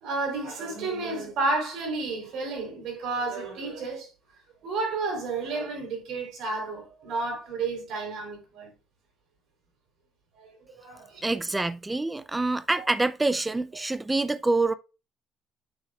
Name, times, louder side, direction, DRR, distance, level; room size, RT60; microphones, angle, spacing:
voice 1, 0.0-4.1 4.6-8.7 10.3-11.2 12.7-12.9, right 3 dB, 65° right, 3.7 m, -31 dB
voice 2, 11.2-14.7, right 2 dB, 10° right, 0.4 m, -26 dB
9.1 x 6.3 x 2.4 m
cardioid pair, 180°, 0 cm